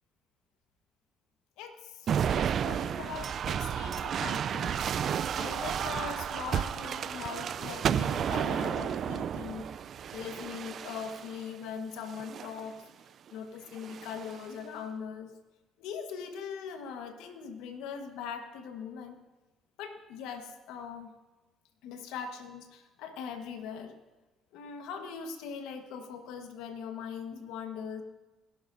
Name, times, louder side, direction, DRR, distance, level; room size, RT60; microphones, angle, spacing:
voice 1, 1.6-4.9 5.3-9.7 10.1-12.8 13.3-15.3 15.8-19.2 19.8-21.1 21.8-24.0 24.5-28.0, left 6 dB, 80° left, 6 dB, 1.3 m, -41 dB
sound 1, 2.1-11.4 12.1-12.7 13.8-14.4, right 8 dB, 60° right, 0.4 m, -32 dB
20.5 x 12.0 x 2.7 m, 1.2 s
supercardioid pair, 60°, 0 cm